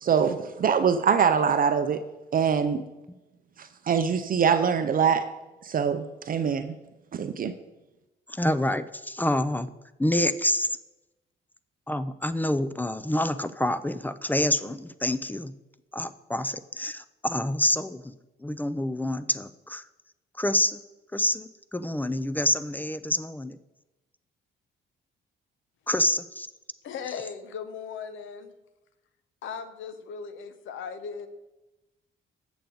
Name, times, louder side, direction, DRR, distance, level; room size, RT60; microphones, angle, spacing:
voice 1, 0.0-2.0 2.3-2.8 3.6-5.3 5.6-6.8 7.1-7.5, right 7 dB, 45° right, 9 dB, 0.5 m, -24 dB
voice 2, 8.3-9.7 10.0-10.7 11.9-15.5 15.9-18.1 18.4-19.8 20.4-20.8 21.1-23.6 25.9-26.5, left 1 dB, 10° left, 13 dB, 0.4 m, -27 dB
voice 3, 26.8-28.5 29.4-31.3, left 6 dB, 80° left, 11 dB, 0.8 m, -37 dB
8.2 x 6.9 x 3.9 m, 1.0 s
cardioid pair, 90°, 20 cm